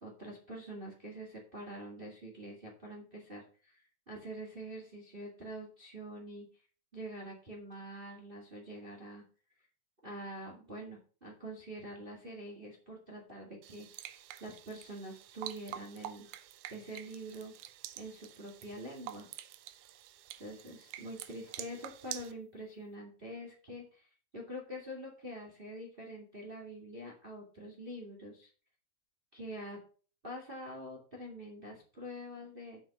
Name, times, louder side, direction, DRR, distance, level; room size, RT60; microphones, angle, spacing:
voice 1, 0.0-6.5 6.9-9.2 10.0-16.3 16.7-17.5 17.9-19.3 20.4-24.1 24.3-28.5 29.3-29.8 30.2-32.8, right 1 dB, 20° right, 0 dB, 1.8 m, -45 dB
sound 1, 13.6-22.3, right 12 dB, 75° right, 2.1 m, -47 dB
7.1 x 6.1 x 6.1 m, 0.38 s
omnidirectional pair, 3.8 m